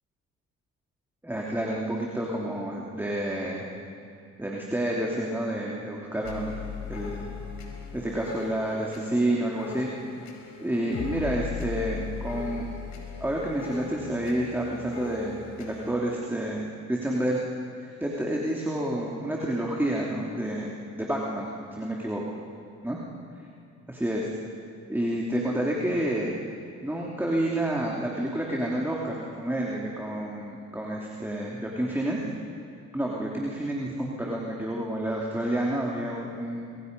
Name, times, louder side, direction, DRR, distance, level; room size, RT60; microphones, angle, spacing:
voice 1, 1.2-3.7 4.4-6.5 6.9-7.3 7.9-9.9 10.6-12.6 13.2-17.4 17.8-22.2 22.8-23.0 23.9-24.4 24.9-26.4 26.8-32.2 32.9-36.8, right 1 dB, 5° right, -3 dB, 3.0 m, -29 dB
sound 1, 6.2-16.0, left 5 dB, 70° left, 5.1 m, -38 dB
26.5 x 23.5 x 5.4 m, 2.5 s
cardioid pair, 90°, 30 cm